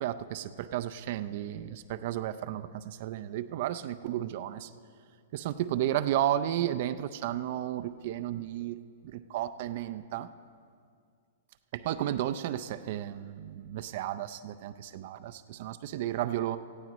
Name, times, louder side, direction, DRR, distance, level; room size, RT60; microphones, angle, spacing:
voice 1, 0.0-4.7 5.3-8.8 9.0-10.3 11.7-16.6, right 12 dB, 55° right, 12 dB, 0.5 m, -33 dB
17.5 x 15.5 x 3.0 m, 2.2 s
hypercardioid pair, 135°, 0 cm